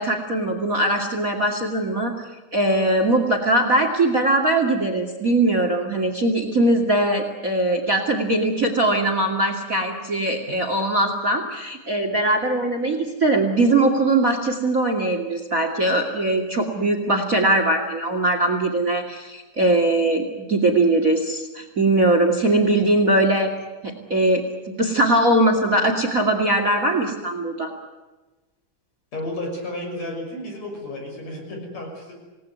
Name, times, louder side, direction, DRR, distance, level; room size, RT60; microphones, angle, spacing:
voice 1, 0.0-2.1 2.5-23.5 23.8-24.4 24.8-27.7, right 2 dB, 30° right, 5 dB, 2.5 m, -21 dB
voice 2, 29.1-32.2, left 1 dB, 60° left, 2 dB, 7.4 m, -32 dB
28.0 x 19.0 x 9.6 m, 1.2 s
omnidirectional pair, 3.5 m